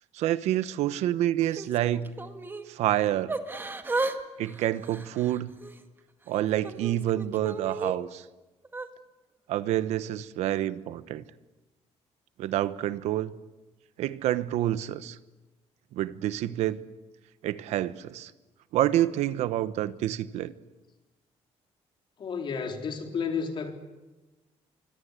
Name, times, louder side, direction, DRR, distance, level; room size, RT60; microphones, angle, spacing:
voice 1, 0.1-2.1 2.7-3.3 4.4-5.5 6.3-8.2 9.5-11.2 12.4-13.3 14.0-15.2 15.9-16.8 17.4-18.3 18.7-20.5, right 13 dB, 90° right, 14 dB, 1.1 m, -28 dB
Yell / Crying sobbing, 1.4-2.7 3.3-4.2 4.4-5.8 6.3-7.9 8.6-8.9, right 3 dB, 20° right, 1.9 m, -34 dB
voice 2, 22.2-23.8, left 5 dB, 50° left, 4 dB, 3.8 m, -32 dB
25.0 x 25.0 x 8.3 m, 1.1 s
cardioid pair, 120°, 11 cm